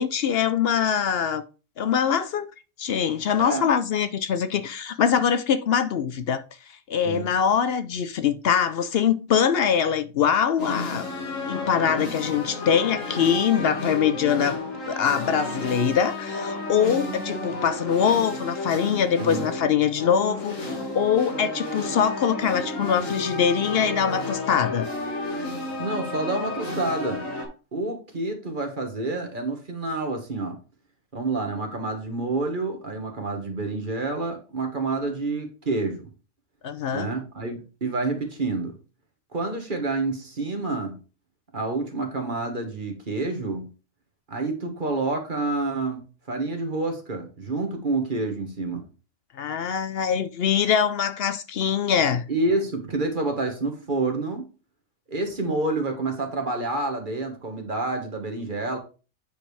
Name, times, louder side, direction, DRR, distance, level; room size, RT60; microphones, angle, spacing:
voice 1, 0.0-1.4 1.8-2.5 2.8-6.4 6.9-11.0 11.5-14.6 14.9-24.9 36.6-37.1 49.4-52.2, left 7 dB, 60° left, 0.7 m, -23 dB
voice 2, 3.4-3.7 7.0-7.3 19.2-19.4 25.8-27.2 27.7-30.6 31.1-36.1 36.9-38.7 39.3-41.0 41.5-43.7 44.3-48.9 52.3-54.5 55.1-58.8, right 2 dB, 40° right, 1.6 m, -28 dB
sound 1, 10.6-27.5, left 2 dB, 85° left, 2.4 m, -32 dB
8.7 x 5.1 x 3.3 m
omnidirectional pair, 1.3 m